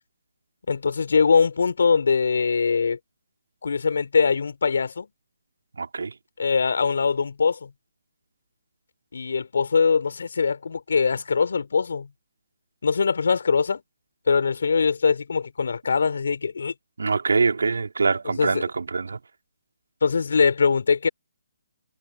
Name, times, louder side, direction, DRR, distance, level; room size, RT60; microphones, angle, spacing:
voice 1, 0.7-3.0 3.6-5.1 6.4-7.7 9.1-12.1 12.8-13.8 14.3-16.7 18.2-18.6 20.0-21.1, left 5 dB, 70° left, 4.3 m, -22 dB
voice 2, 5.8-6.1 17.0-19.2, right 4 dB, 80° right, 3.6 m, -24 dB
hypercardioid pair, 150°, 0 cm